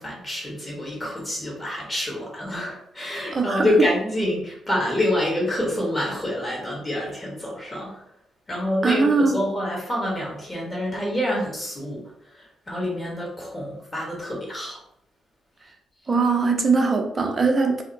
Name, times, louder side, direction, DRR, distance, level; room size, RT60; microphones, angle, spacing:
voice 1, 0.0-8.1 8.5-14.8, left 1 dB, 25° left, -3 dB, 1.2 m, -27 dB
voice 2, 3.3-3.7 8.8-9.4 16.1-17.8, right 4 dB, 40° right, 3 dB, 0.5 m, -21 dB
2.6 x 2.1 x 2.6 m, 0.74 s
supercardioid pair, 60°, 0 cm